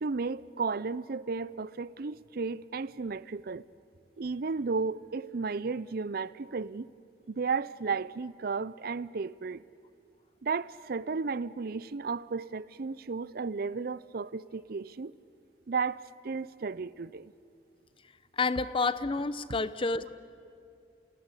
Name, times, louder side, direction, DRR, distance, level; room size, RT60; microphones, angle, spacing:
voice 1, 0.0-3.6 4.2-6.9 7.3-9.6 10.4-15.1 15.7-17.3, right 4 dB, 60° right, 0.5 m, -34 dB
voice 2, 18.3-20.1, left 3 dB, 30° left, 0.7 m, -29 dB
28.0 x 18.0 x 9.8 m
head